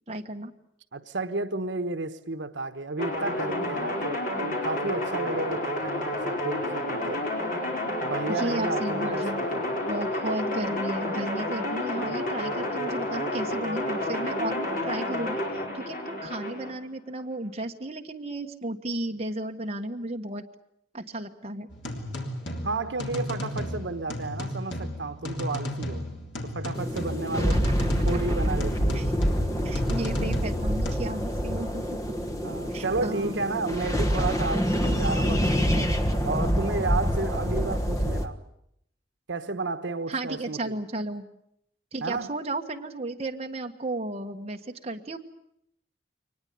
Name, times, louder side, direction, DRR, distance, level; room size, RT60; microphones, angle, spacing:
voice 1, 0.1-0.5 8.3-15.4 15.7-20.4 20.9-21.7 28.9-29.1 29.6-32.0 32.7-33.4 40.1-41.3 41.9-45.2, right 1 dB, 35° right, 1.4 m, -34 dB
voice 2, 0.9-7.2 8.0-9.8 22.6-26.1 26.4-27.7 28.0-29.1 32.4-36.0 36.2-38.4 39.3-40.8 42.0-42.3, right 3 dB, 80° right, 1.2 m, -32 dB
sound 1, 3.0-16.7, left 1 dB, 45° left, 5.0 m, -30 dB
sound 2, 21.7-31.0, left 1 dB, 75° left, 3.3 m, -34 dB
sound 3, 26.7-38.2, equal, 20° left, 1.3 m, -26 dB
23.5 x 20.0 x 8.5 m
head